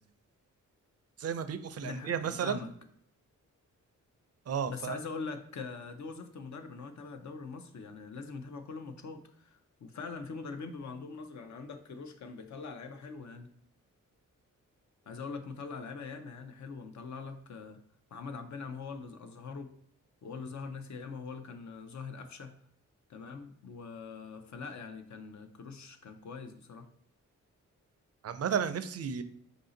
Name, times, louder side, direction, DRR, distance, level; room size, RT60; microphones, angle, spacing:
voice 1, 1.2-2.6 4.5-5.0 28.2-29.2, right 7 dB, 50° right, 11 dB, 0.4 m, -33 dB
voice 2, 1.8-2.7 4.7-13.5 15.1-17.8 18.1-19.7 20.2-22.5 23.1-26.9, left 4 dB, 60° left, 7 dB, 0.6 m, -43 dB
4.9 x 2.7 x 3.8 m, 0.67 s
cardioid pair, 90°, 32 cm